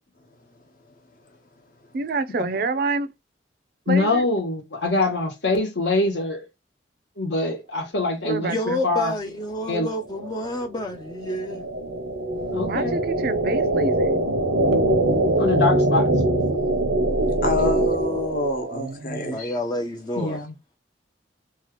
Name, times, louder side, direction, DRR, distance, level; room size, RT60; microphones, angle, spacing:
voice 1, 1.9-3.1 3.9-4.3 8.2-8.8 12.6-14.2 18.7-19.4, right 3 dB, 50° right, 0.4 m, -27 dB
voice 2, 3.9-6.5 7.2-8.5 8.8-9.1 9.6-9.9 12.5-13.0 15.4-16.1 20.2-20.5, left 2 dB, 70° left, 1.0 m, -24 dB
voice 3, 8.5-11.7 19.3-20.4, left 1 dB, 25° left, 0.4 m, -29 dB
sound 1, 10.0-18.9, right 2 dB, 90° right, 0.7 m, -23 dB
voice 4, 17.4-19.6, left 3 dB, 50° left, 0.8 m, -27 dB
2.8 x 2.3 x 3.0 m
head